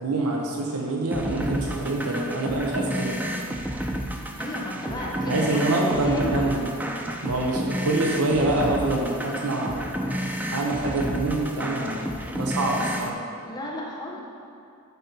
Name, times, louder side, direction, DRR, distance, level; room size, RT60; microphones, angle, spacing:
voice 1, 0.0-3.2 5.2-6.7 7.2-10.0 10.5-13.2, right 2 dB, 90° right, -1 dB, 1.0 m, -26 dB
sound 1, 1.1-13.1, equal, 5° right, 0.5 m, -31 dB
voice 2, 4.4-6.5 13.4-14.2, left 1 dB, 20° left, -3 dB, 1.3 m, -33 dB
12.5 x 4.4 x 5.3 m, 2.6 s
head